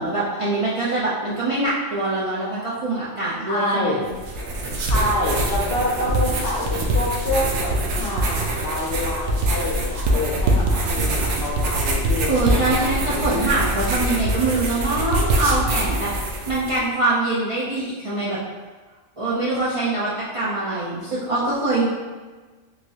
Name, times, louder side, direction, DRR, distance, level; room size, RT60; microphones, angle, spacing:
voice 1, 0.0-4.0 12.3-18.4 19.2-21.9, right 2 dB, 45° right, -10 dB, 0.4 m, -23 dB
voice 2, 3.5-4.0 4.9-13.3, left 1 dB, 60° left, -3 dB, 0.7 m, -27 dB
sound 1, 4.1-16.8, right 1 dB, 75° right, 0.9 m, -23 dB
3.2 x 2.6 x 2.7 m, 1.3 s
omnidirectional pair, 1.2 m